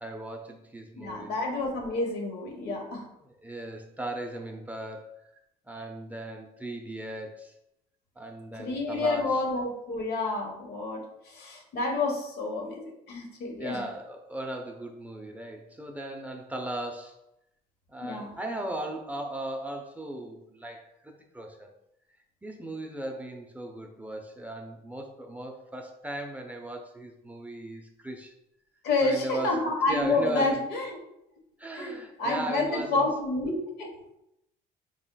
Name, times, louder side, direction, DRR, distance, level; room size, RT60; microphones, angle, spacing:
voice 1, 0.0-1.3 3.4-5.1 5.7-7.5 8.2-9.4 13.6-17.2 17.9-21.7 22.4-28.3 29.0-30.6 31.6-33.1, right 1 dB, 10° right, 2 dB, 0.5 m, -37 dB
voice 2, 1.0-3.1 8.6-13.8 18.0-18.3 28.8-31.0 31.7-33.9, left 3 dB, 70° left, 1 dB, 1.2 m, -29 dB
5.1 x 3.6 x 2.2 m, 0.81 s
cardioid pair, 110°, 17 cm